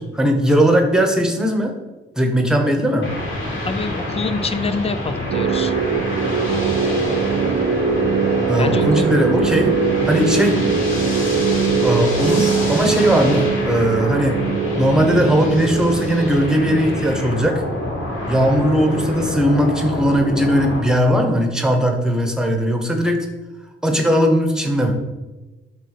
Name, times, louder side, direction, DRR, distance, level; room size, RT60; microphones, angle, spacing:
voice 1, 0.0-1.7 2.2-3.1 8.5-9.7 10.0-10.6 11.8-14.4 14.8-17.6 18.3-23.3 23.8-24.9, equal, 5° right, 3 dB, 1.3 m, -18 dB
sound 1, 3.0-20.8, left 1 dB, 75° left, 3.4 m, -26 dB
voice 2, 3.7-5.7 8.6-9.1 10.0-10.3, left 4 dB, 30° left, 11 dB, 0.6 m, -26 dB
sound 2, 5.3-18.1, right 6 dB, 75° right, 0.7 m, -22 dB
11.5 x 4.0 x 6.7 m, 1.1 s
wide cardioid pair, 150°, 21 cm